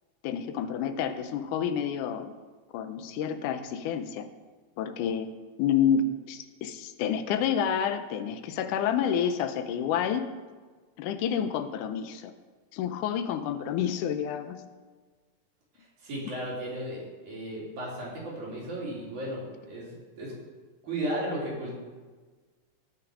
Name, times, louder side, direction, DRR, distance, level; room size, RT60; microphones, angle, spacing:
voice 1, 0.2-2.3 2.7-4.3 4.8-5.3 5.6-10.3 11.0-12.3 12.7-14.6, left 8 dB, 85° left, 10 dB, 2.2 m, -29 dB
voice 2, 16.0-20.3 20.8-21.8, right 1 dB, 70° right, -5 dB, 4.7 m, -35 dB
17.5 x 5.9 x 4.9 m, 1.4 s
omnidirectional pair, 3.6 m